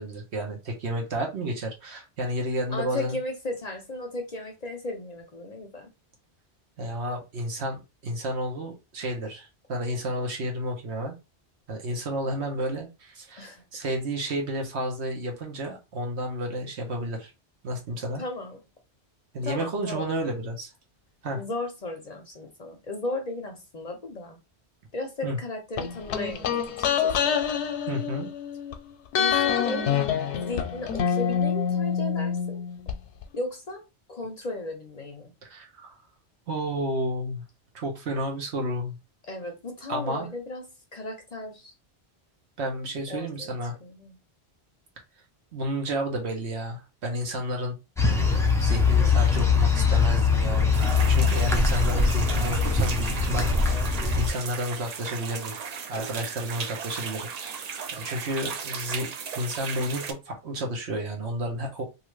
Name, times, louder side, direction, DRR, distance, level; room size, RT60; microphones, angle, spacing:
voice 1, 0.0-3.2 6.8-11.1 11.7-17.3 17.6-18.2 19.3-20.7 21.2-21.5 25.2-25.4 27.9-28.3 35.4-36.0 36.5-37.4 37.7-39.0 39.9-40.3 42.6-43.7 45.5-47.8 48.6-50.7 51.1-53.9 54.1-55.5 55.9-57.3 57.9-61.8, right 1 dB, 80° right, 1.3 m, -31 dB
voice 2, 2.7-5.9 13.4-13.6 18.2-18.6 19.4-20.1 21.3-24.4 24.9-27.3 29.2-29.9 30.3-32.6 33.3-33.8 34.1-35.3 39.3-40.6 40.9-41.7 43.1-43.5 43.8-44.2, left 2 dB, 45° left, 0.6 m, -35 dB
sound 1, 25.8-28.7 29.1-33.0 33.2-33.3, left 7 dB, 90° left, 0.9 m, -26 dB
sound 2, 48.0-54.3, left 4 dB, 5° left, 0.4 m, -22 dB
sound 3, 50.7-60.1, right 6 dB, 55° right, 0.4 m, -36 dB
3.0 x 2.5 x 3.1 m
omnidirectional pair, 1.1 m